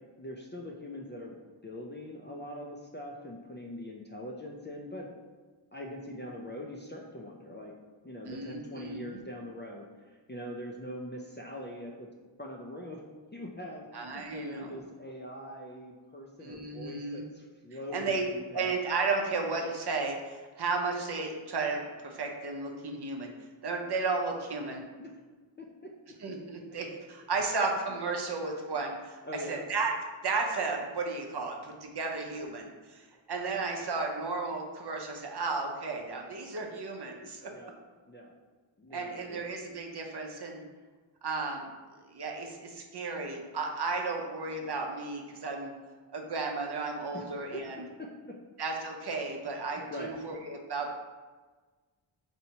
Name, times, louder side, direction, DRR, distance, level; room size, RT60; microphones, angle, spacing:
voice 1, 0.2-5.1 5.7-7.7 8.0-12.1 12.4-13.0 13.3-13.9 14.1-18.7 25.0-25.1 25.6-25.9 29.2-29.6 33.1-33.2 37.5-37.7 38.1-38.3 38.8-39.4 47.1-47.2 47.5-47.6 48.0-48.4 49.9-50.1, left 1 dB, 25° left, -1 dB, 0.3 m, -42 dB
voice 2, 8.3-9.2 13.9-14.7 16.4-17.2 17.9-18.2 18.5-23.3 23.6-24.8 26.2-29.2 29.5-29.9 30.2-37.5 38.9-40.6 41.2-41.7 42.1-45.7 46.1-47.8 48.6-50.9, right 3 dB, 55° right, 1 dB, 0.6 m, -34 dB
4.3 x 2.7 x 2.8 m, 1.4 s
wide cardioid pair, 80°, 49 cm